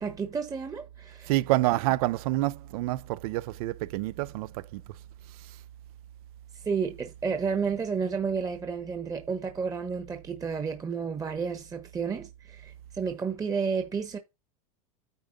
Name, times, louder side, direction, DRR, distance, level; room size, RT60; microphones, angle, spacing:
voice 1, 0.0-1.3 6.5-14.2, right 5 dB, 20° right, 1.1 m, -31 dB
voice 2, 1.3-4.8, right 17 dB, 70° right, 0.6 m, -27 dB
9.3 x 3.7 x 5.2 m
supercardioid pair, 120°, 19 cm